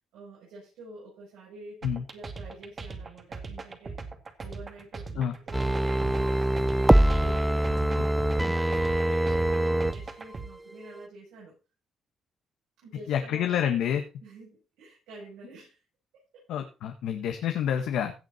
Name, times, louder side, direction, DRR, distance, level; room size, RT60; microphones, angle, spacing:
voice 1, 0.1-4.0 4.4-8.8 9.0-11.5 12.8-13.5 14.2-15.8 16.1-16.5, right 2 dB, 90° right, -7 dB, 7.4 m, -48 dB
sound 1, 1.8-10.5, right 4 dB, 35° right, 2.2 m, -40 dB
sound 2, 5.5-9.9 10.3-10.4, right 1 dB, 10° right, 0.7 m, -24 dB
voice 2, 13.1-14.0 16.5-18.1, left 9 dB, 85° left, 6 dB, 1.4 m, -28 dB
16.5 x 6.6 x 4.2 m, 0.32 s
cardioid pair, 90°, 0 cm